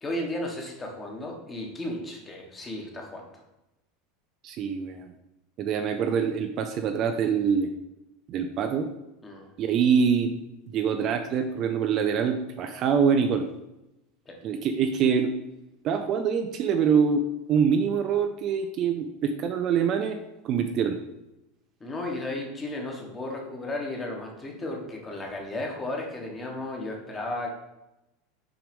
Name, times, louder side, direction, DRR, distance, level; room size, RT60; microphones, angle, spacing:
voice 1, 0.0-3.3 9.2-9.5 14.2-14.3 21.8-27.5, left 1 dB, 15° left, 1 dB, 1.4 m, -34 dB
voice 2, 4.4-5.1 5.6-7.7 8.3-8.9 9.6-10.3 10.7-13.5 14.4-15.3 15.8-17.2 17.5-20.2 20.4-21.0, right 6 dB, 35° right, 6 dB, 0.5 m, -24 dB
6.0 x 4.8 x 5.3 m, 0.93 s
supercardioid pair, 155°, 0 cm